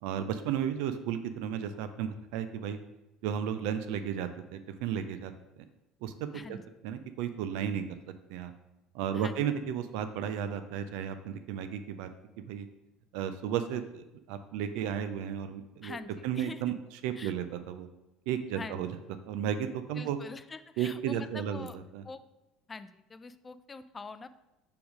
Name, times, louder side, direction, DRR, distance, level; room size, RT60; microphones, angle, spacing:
voice 1, 0.0-2.8 3.2-5.3 6.0-6.6 6.8-7.8 8.3-8.5 8.9-12.1 12.5-12.7 13.1-16.0 16.2-17.9 18.3-19.0 19.2-20.2 20.8-22.0, right 9 dB, 60° right, 9 dB, 0.4 m, -34 dB
voice 2, 15.8-16.6 17.2-17.3 18.5-18.9 20.0-21.8 22.0-22.2 22.7-24.3, left 4 dB, 25° left, 13 dB, 0.4 m, -44 dB
5.2 x 4.5 x 5.1 m, 0.96 s
figure-of-eight pair, 60°, 0 cm